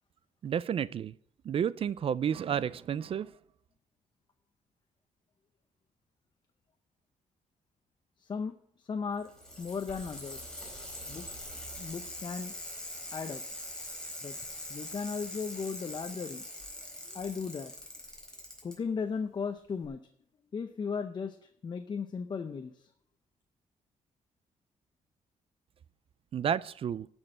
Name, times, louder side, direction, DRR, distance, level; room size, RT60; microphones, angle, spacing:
voice 1, 0.4-1.1 1.4-3.3 26.3-27.1, right 8 dB, 45° right, 19 dB, 0.4 m, -31 dB
voice 2, 8.2-9.3 9.6-10.5 11.1-11.3 11.8-12.5 13.1-13.4 14.2-14.4 14.7-16.4 16.8-17.7 18.6-20.0 20.5-22.9, left 5 dB, 35° left, 7 dB, 0.7 m, -36 dB
Bicycle, 9.1-18.7 19.8-19.9, left 1 dB, 5° left, 4.0 m, -43 dB
12.0 x 6.3 x 8.8 m, 0.66 s
cardioid pair, 130°, 13 cm